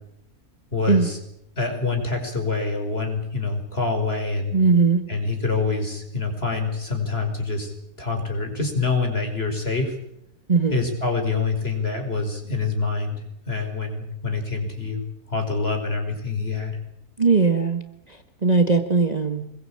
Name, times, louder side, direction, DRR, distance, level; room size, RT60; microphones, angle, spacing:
voice 1, 0.7-1.2 1.6-4.6 5.1-7.7 8.0-9.9 10.7-15.0 15.3-16.8, left 4 dB, 40° left, 4 dB, 5.7 m, -26 dB
voice 2, 4.5-5.0 10.5-10.8 17.2-17.8 18.4-19.4, right 4 dB, 25° right, 6 dB, 1.7 m, -19 dB
25.5 x 22.0 x 8.9 m, 0.78 s
omnidirectional pair, 1.6 m